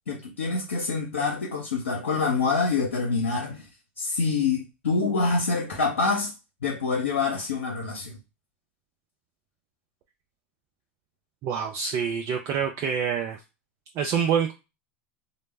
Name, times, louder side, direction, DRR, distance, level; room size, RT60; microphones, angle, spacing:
voice 1, 0.1-3.7 4.0-6.3 6.6-8.2, left 4 dB, 90° left, 0.6 m, -26 dB
voice 2, 11.4-13.4 14.0-14.5, right 7 dB, 50° right, 0.4 m, -26 dB
2.0 x 2.0 x 3.3 m
hypercardioid pair, 85°, 7 cm